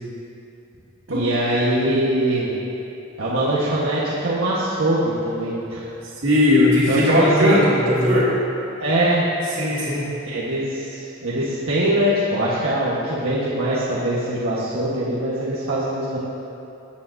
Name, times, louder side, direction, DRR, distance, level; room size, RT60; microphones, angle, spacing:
voice 1, 1.1-2.5 3.2-5.9 6.9-7.6 8.8-9.3 10.2-16.2, right 1 dB, 85° right, -8 dB, 1.4 m, -22 dB
voice 2, 6.2-8.3 9.6-10.1, left 1 dB, 65° right, -7 dB, 2.4 m, -18 dB
17.5 x 8.7 x 2.7 m, 2.8 s
head